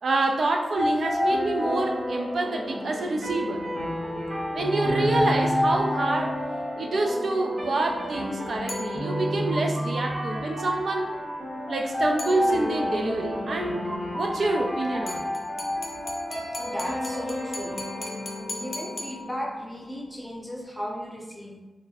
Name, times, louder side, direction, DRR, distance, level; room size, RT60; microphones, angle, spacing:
voice 1, 0.0-3.6 4.5-6.4 6.8-11.1 11.7-13.8 14.1-15.3, right 2 dB, 70° right, 2 dB, 0.4 m, -27 dB
sound 1, 0.8-19.7, left 1 dB, 30° right, 1.2 m, -30 dB
sound 2, 8.7-9.5 12.2-12.9 15.1-19.7, left 2 dB, 55° left, 0.5 m, -39 dB
voice 2, 16.6-17.8 18.5-21.6, equal, 5° left, -2 dB, 0.7 m, -35 dB
2.5 x 2.5 x 3.9 m, 1.2 s
wide cardioid pair, 90°, 0 cm